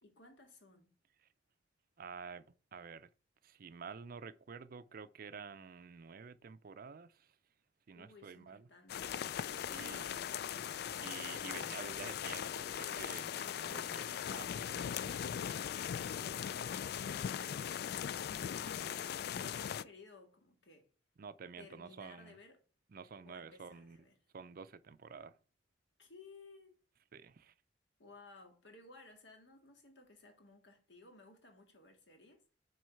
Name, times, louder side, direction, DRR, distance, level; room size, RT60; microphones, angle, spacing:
voice 1, 0.0-1.0 7.9-9.2 9.7-10.1 16.1-17.7 18.1-20.9 21.6-22.6 23.3-24.2 26.0-26.8 28.0-32.4, left 3 dB, 75° left, 1.9 m, -58 dB
voice 2, 2.0-2.4 2.7-3.1 3.4-7.1 7.9-8.6 9.7-10.1 11.0-15.4 21.2-22.4 22.9-24.0 24.3-25.3 27.1-27.5, right 5 dB, 55° right, 0.5 m, -50 dB
sound 1, 8.9-19.8, left 9 dB, 60° left, 0.3 m, -39 dB
6.3 x 4.8 x 4.5 m
head